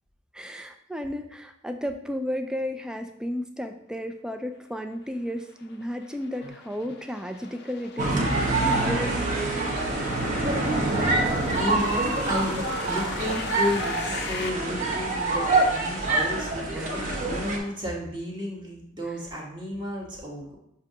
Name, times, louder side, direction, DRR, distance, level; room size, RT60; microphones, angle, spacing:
voice 1, 0.3-9.5 10.1-10.8 12.0-12.2 16.7-17.0 19.1-19.2, equal, 5° right, 6 dB, 0.3 m, -34 dB
sound 1, 4.9-14.5, left 5 dB, 50° left, 0.5 m, -39 dB
sound 2, 8.0-17.6, right 2 dB, 35° right, 1.1 m, -26 dB
voice 2, 10.5-20.6, left 1 dB, 20° right, -3 dB, 1.3 m, -33 dB
7.3 x 2.8 x 4.9 m, 0.76 s
head